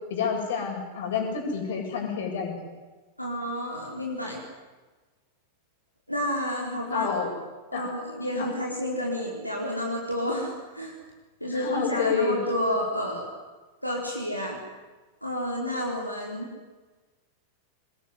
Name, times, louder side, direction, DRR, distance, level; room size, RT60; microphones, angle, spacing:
voice 1, 0.1-2.5 6.9-7.3 7.7-7.9 8.4-8.5 11.5-12.4 12.7-12.8, left 6 dB, 60° left, 3 dB, 7.5 m, -29 dB
voice 2, 3.2-4.4 6.1-7.1 7.7-10.9 11.4-13.3 13.8-14.6 15.2-16.5, equal, 90° left, -2 dB, 4.4 m, -30 dB
25.5 x 20.5 x 10.0 m, 1.3 s
figure-of-eight pair, 90°, 0 cm